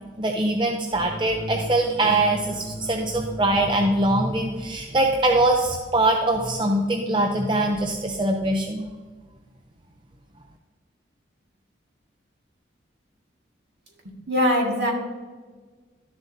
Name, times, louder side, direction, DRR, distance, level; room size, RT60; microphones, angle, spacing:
voice 1, 0.2-8.9, right 2 dB, 25° right, 2 dB, 0.6 m, -22 dB
sound 1, 0.9-6.0, right 1 dB, 5° left, 1.7 m, -38 dB
voice 2, 14.0-14.9, equal, 60° right, -1 dB, 1.9 m, -22 dB
12.5 x 7.2 x 2.7 m, 1.4 s
head